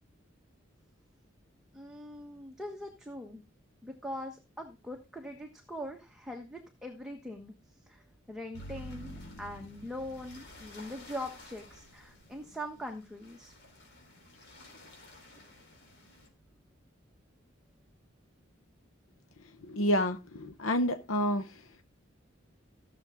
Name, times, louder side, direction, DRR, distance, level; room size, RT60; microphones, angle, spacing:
voice 1, 1.7-3.4 3.8-7.5 7.9-13.5, equal, 5° right, 1.2 m, -42 dB
sound 1, 8.5-16.3, left 1 dB, 55° left, 4.5 m, -50 dB
voice 2, 19.6-21.6, equal, 90° left, 0.8 m, -29 dB
15.5 x 7.0 x 3.7 m
head